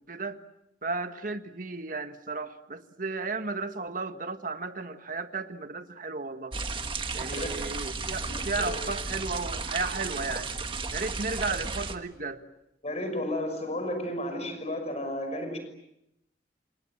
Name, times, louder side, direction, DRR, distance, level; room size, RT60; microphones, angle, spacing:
voice 1, 0.1-0.4 0.8-6.6 7.1-10.5 10.9-12.4, right 3 dB, 50° right, 1.6 m, -34 dB
sound 1, 6.5-12.0, right 4 dB, 30° right, 1.7 m, -34 dB
voice 2, 12.8-15.6, left 1 dB, 35° left, 5.9 m, -32 dB
29.0 x 27.0 x 7.4 m
head